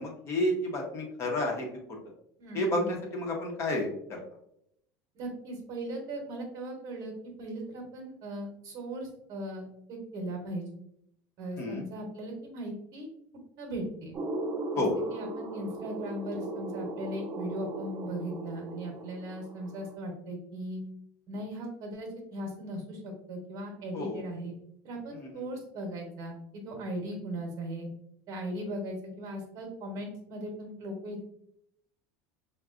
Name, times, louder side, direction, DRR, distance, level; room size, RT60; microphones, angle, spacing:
voice 1, 0.0-1.7 2.5-4.2 11.6-11.8 14.7-14.9 23.9-24.2, left 1 dB, 35° left, 0 dB, 0.9 m, -30 dB
voice 2, 2.4-3.0 5.1-7.1 7.4-10.6 11.4-13.1 13.6-14.2 14.7-20.8 21.3-24.5 24.8-27.9 28.3-31.3, right 1 dB, 50° right, 1 dB, 1.0 m, -38 dB
sound 1, 14.1-19.9, right 2 dB, 30° right, 0.6 m, -37 dB
4.6 x 2.2 x 2.4 m, 0.75 s
supercardioid pair, 135°, 8 cm